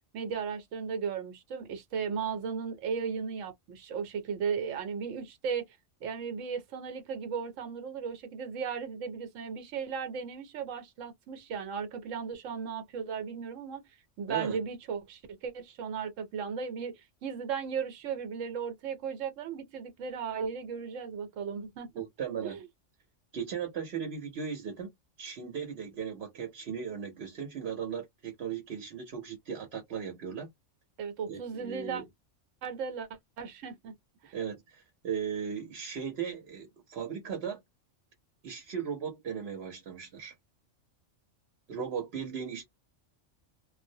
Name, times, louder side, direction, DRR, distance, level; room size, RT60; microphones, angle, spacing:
voice 1, 0.1-5.6 6.0-13.8 14.2-21.9 22.4-22.6 31.0-32.0 32.6-33.1 33.4-33.9 34.2-34.3, right 6 dB, 80° right, 1.1 m, -36 dB
voice 2, 21.9-22.6 23.3-24.9 25.2-30.5 31.3-32.1 34.3-37.6 38.4-40.3 41.7-42.7, right 7 dB, 60° right, 0.9 m, -37 dB
2.3 x 2.0 x 2.6 m
omnidirectional pair, 1.3 m